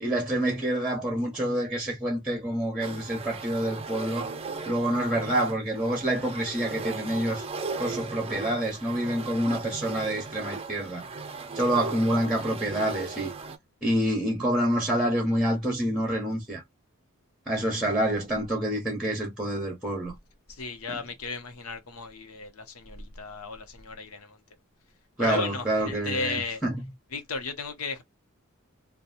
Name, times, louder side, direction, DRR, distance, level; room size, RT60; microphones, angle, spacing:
voice 1, 0.0-4.3 4.7-7.4 7.8-11.0 11.5-13.3 13.8-16.6 17.5-20.1 25.2-26.8, right 1 dB, ahead, 0.9 m, -27 dB
sound 1, 2.8-13.6, right 4 dB, 25° right, 0.5 m, -37 dB
voice 2, 20.5-24.4 25.2-26.6 27.1-28.0, left 4 dB, 80° left, 0.8 m, -34 dB
2.9 x 2.2 x 2.5 m
head